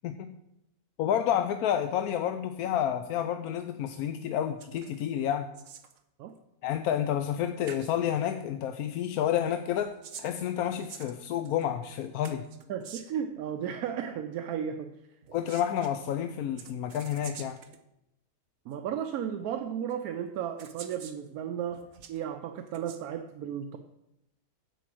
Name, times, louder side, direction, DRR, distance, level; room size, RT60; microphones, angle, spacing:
voice 1, 1.0-5.5 6.6-9.9 10.2-12.5 15.3-17.6, left 10 dB, 80° left, 8 dB, 1.1 m, -30 dB
sound 1, 4.6-5.0 5.3-6.0 7.3-7.4 7.7-7.9 9.7-11.6 12.2-13.3 15.2-15.9 16.6-17.8 18.7-18.8 19.9-20.0 20.6-21.2 21.7-22.2 22.7-23.0, right 7 dB, 65° right, 1.1 m, -47 dB
voice 2, 12.7-15.0 18.7-23.8, right 9 dB, 80° right, 7 dB, 1.1 m, -34 dB
10.5 x 4.7 x 7.6 m, 0.86 s
omnidirectional pair, 1.6 m